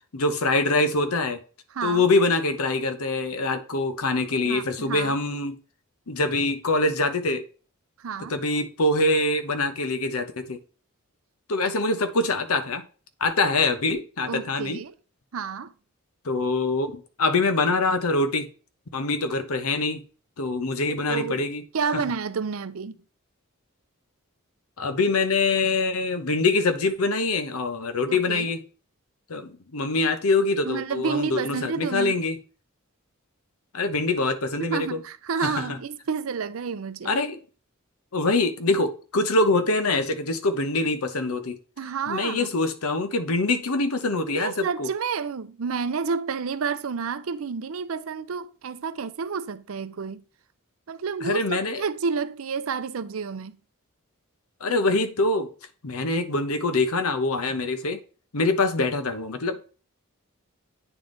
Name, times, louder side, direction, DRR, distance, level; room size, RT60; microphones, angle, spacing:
voice 1, 0.1-1.4 1.8-5.6 6.1-7.4 8.3-10.6 11.5-12.8 13.2-14.8 16.2-18.5 18.9-20.0 20.4-21.6 21.9-22.0 24.8-28.6 29.3-32.4 33.7-35.0 35.4-35.8 37.0-37.4 38.1-41.6 42.1-44.9 51.2-51.8 54.6-55.5 55.8-58.0 58.3-59.7, left 3 dB, 85° left, 0.9 m, -24 dB
voice 2, 1.7-2.1 4.4-5.2 8.0-8.3 14.3-14.9 15.3-15.7 21.1-21.4 21.7-23.0 28.1-28.5 30.6-32.1 34.6-37.1 41.8-42.5 44.3-50.2 50.9-53.6, right 5 dB, 70° right, 0.5 m, -30 dB
9.1 x 3.5 x 3.9 m
head